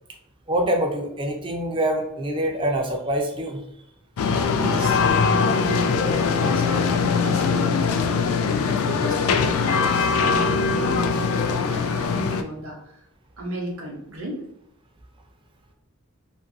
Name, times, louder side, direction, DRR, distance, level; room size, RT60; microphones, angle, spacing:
voice 1, 0.5-3.6 5.0-5.1, right 1 dB, 25° right, 2 dB, 0.4 m, -25 dB
sound 1, 4.2-12.4, left 5 dB, 65° left, 0.3 m, -21 dB
voice 2, 4.6-13.0 13.4-14.4, right 1 dB, 60° right, -1 dB, 0.8 m, -35 dB
2.6 x 2.6 x 2.6 m, 0.76 s
head